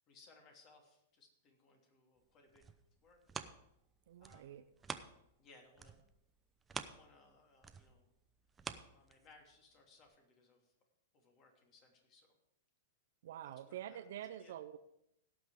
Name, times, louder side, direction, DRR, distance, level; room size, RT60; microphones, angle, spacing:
voice 1, 0.1-2.6 3.0-3.2 4.2-4.7 5.4-6.0 6.8-8.1 8.9-10.7 11.1-12.4 13.4-14.1 14.4-14.6, left 3 dB, 35° left, 2 dB, 2.9 m, -65 dB
sound 1, 2.3-5.5 5.8-9.6 10.1-10.2, right 5 dB, 15° right, 0.7 m, -49 dB
voice 2, 4.1-4.6 13.2-14.8, right 11 dB, 60° right, 11 dB, 0.6 m, -47 dB
17.0 x 6.0 x 4.9 m, 0.79 s
hypercardioid pair, 105°, 0 cm